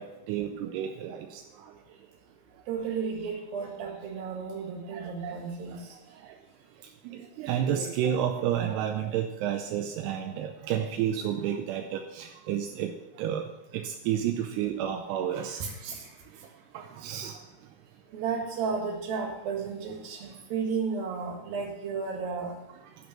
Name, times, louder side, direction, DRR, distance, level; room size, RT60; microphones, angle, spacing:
voice 1, 0.0-1.7 4.9-5.3 6.2-6.3 7.1-13.5 13.7-15.8 16.7-17.4, right 9 dB, 80° right, 4 dB, 2.5 m, -31 dB
voice 2, 2.7-6.0 15.6-16.0 17.1-17.2 18.1-22.5, right 5 dB, 60° right, 1 dB, 3.3 m, -33 dB
11.0 x 5.3 x 7.4 m, 1.0 s
omnidirectional pair, 5.1 m